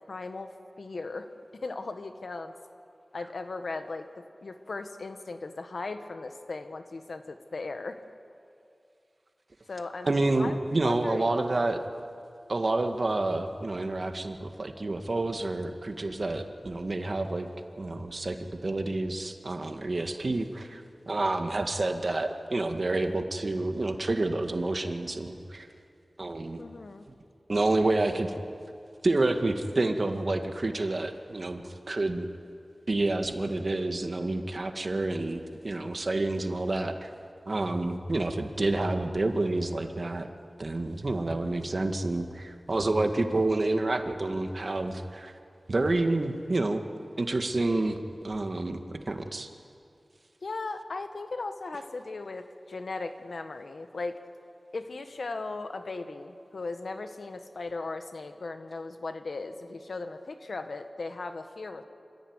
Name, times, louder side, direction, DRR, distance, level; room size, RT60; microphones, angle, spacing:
voice 1, 0.1-0.5 0.8-2.5 3.1-4.1 4.4-8.0 9.7-10.6 10.8-11.6 26.6-27.0 41.8-41.9 50.4-54.2 54.7-61.8, left 3 dB, 80° left, 8 dB, 1.5 m, -37 dB
voice 2, 10.0-11.8 12.5-17.5 17.8-25.7 26.2-26.6 27.5-28.3 29.0-32.3 32.9-37.1 37.5-40.3 40.6-45.3 45.7-46.8 47.2-48.0 48.2-48.8 49.1-49.5, right 2 dB, 60° right, 6 dB, 1.9 m, -29 dB
26.5 x 14.5 x 9.7 m, 2.5 s
cardioid pair, 40°, 0 cm